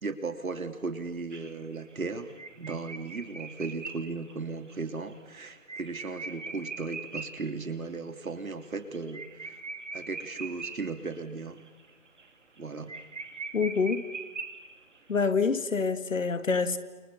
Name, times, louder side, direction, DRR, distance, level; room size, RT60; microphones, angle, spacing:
voice 1, 0.0-9.6 9.9-11.6 12.6-12.9, right 4 dB, 85° right, 8 dB, 3.2 m, -36 dB
sound 1, 1.3-7.5 7.8-7.9 8.2-8.3 8.6-11.2 11.6-11.9 12.2-12.3 12.6-12.7 12.9-15.0, right 4 dB, 60° right, 2.7 m, -41 dB
voice 2, 13.5-14.0 15.1-16.8, left 5 dB, 70° left, 11 dB, 2.0 m, -26 dB
29.0 x 29.0 x 7.0 m, 1.2 s
hypercardioid pair, 175°, 41 cm